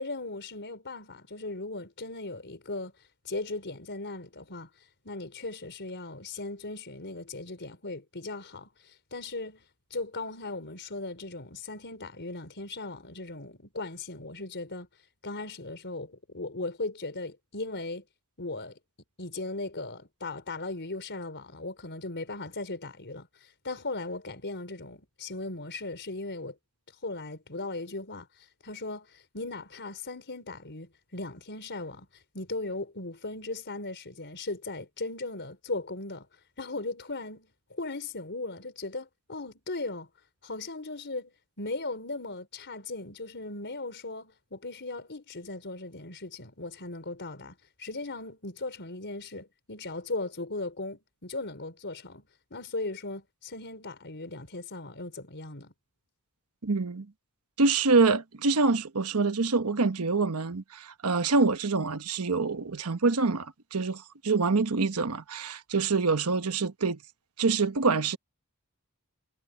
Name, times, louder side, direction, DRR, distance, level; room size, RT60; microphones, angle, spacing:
voice 1, 0.0-2.9 3.2-9.6 9.9-14.9 15.2-18.0 18.4-18.8 19.2-26.6 27.0-36.3 36.6-40.1 40.4-55.7, left 2 dB, 55° left, 4.7 m, -38 dB
voice 2, 56.6-57.1 57.6-67.0 67.4-68.2, right 4 dB, 80° right, 1.1 m, -26 dB
head